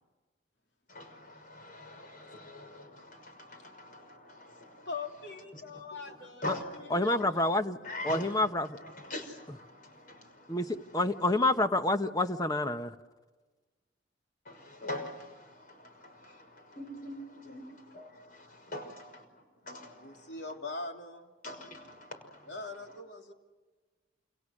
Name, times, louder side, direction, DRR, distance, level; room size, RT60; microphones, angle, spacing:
voice 1, 0.9-4.9 5.5-6.2 6.4-7.4 7.8-11.5 14.4-18.2 18.7-20.4 21.4-23.0, left 1 dB, 45° left, 6.0 m, -44 dB
voice 2, 4.9-6.4 6.7-8.3 20.0-21.3 22.5-23.3, left 3 dB, 65° left, 3.2 m, -42 dB
voice 3, 6.9-7.8 8.0-8.8 10.5-12.9, left 2 dB, 20° left, 1.0 m, -28 dB
29.0 x 28.0 x 6.5 m
head